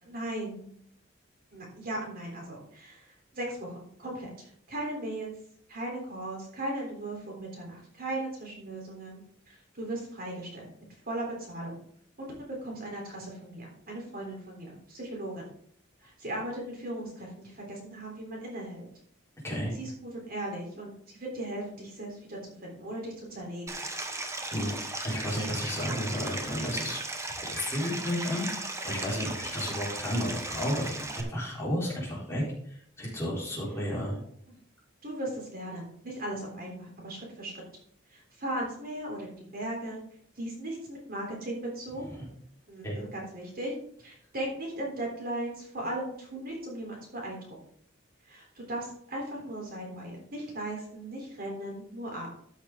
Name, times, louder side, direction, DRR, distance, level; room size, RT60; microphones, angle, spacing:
voice 1, 0.0-0.8 1.5-5.3 5.7-10.7 11.1-11.8 12.2-12.3 12.6-15.5 16.0-18.9 19.7-23.8 34.5-34.6 35.0-37.5 38.1-40.0 40.4-42.0 42.7-43.7 44.0-47.4 48.2-52.3, right 1 dB, 50° right, -1 dB, 3.7 m, -37 dB
voice 2, 19.4-19.8 24.5-24.7 25.0-27.0 27.4-32.4 32.7-34.2 42.8-43.0, equal, 15° left, -6 dB, 4.2 m, -32 dB
Stream, 23.7-31.2, right 2 dB, 15° right, 1.1 m, -36 dB
13.5 x 6.5 x 3.8 m, 0.66 s
head